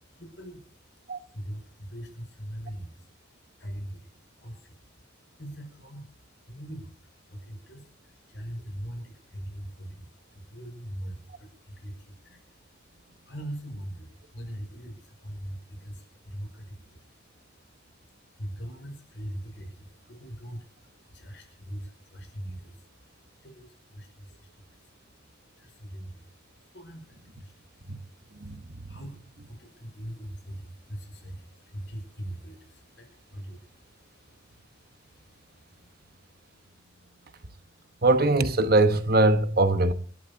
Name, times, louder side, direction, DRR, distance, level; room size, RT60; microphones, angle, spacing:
voice 1, 0.0-35.9, equal, 65° left, 5.6 m, -42 dB
voice 2, 38.0-39.9, right 2 dB, 55° right, 1.1 m, -21 dB
27.5 x 12.5 x 2.8 m
head